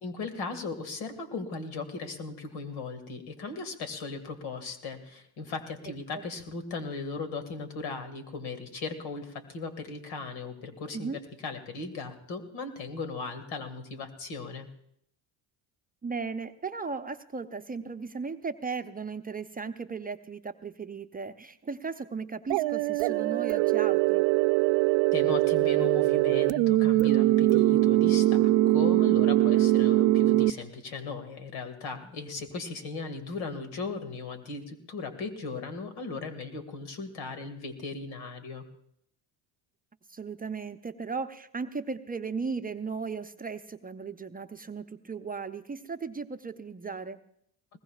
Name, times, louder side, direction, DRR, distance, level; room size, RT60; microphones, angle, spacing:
voice 1, 0.0-11.1 11.4-14.7 25.1-38.6, left 4 dB, 80° left, 8 dB, 2.1 m, -37 dB
voice 2, 16.0-24.3 29.6-29.7 40.1-47.2, right 5 dB, 20° right, 7 dB, 0.6 m, -36 dB
sound 1, 22.5-30.5, right 16 dB, 70° right, 0.5 m, -22 dB
21.0 x 19.0 x 2.4 m, 0.70 s
supercardioid pair, 80°, 47 cm